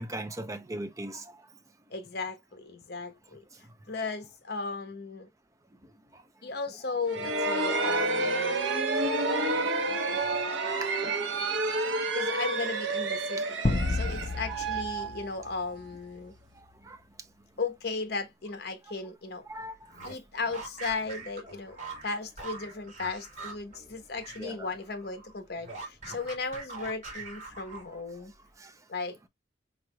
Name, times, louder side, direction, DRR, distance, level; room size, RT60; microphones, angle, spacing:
voice 1, 0.0-1.4 6.1-6.2 7.6-8.3 9.2-10.9 11.7-12.3 14.5-14.6 15.0-15.1 16.6-17.0 18.9-19.0 19.5-19.7 24.4-24.7 26.1-26.2 28.6-28.7, right 1 dB, 15° right, 0.5 m, -42 dB
voice 2, 1.9-5.3 6.4-8.6 12.1-13.4 13.9-16.3 17.6-19.5 20.0-28.3 28.9-29.3, left 4 dB, 55° left, 1.0 m, -36 dB
sound 1, 7.1-15.7, right 2 dB, 75° right, 0.9 m, -29 dB
sound 2, 13.6-16.2, left 2 dB, 35° left, 0.5 m, -31 dB
sound 3, 19.8-24.5 24.8-28.1, right 3 dB, 40° right, 2.6 m, -43 dB
4.6 x 3.8 x 2.2 m
head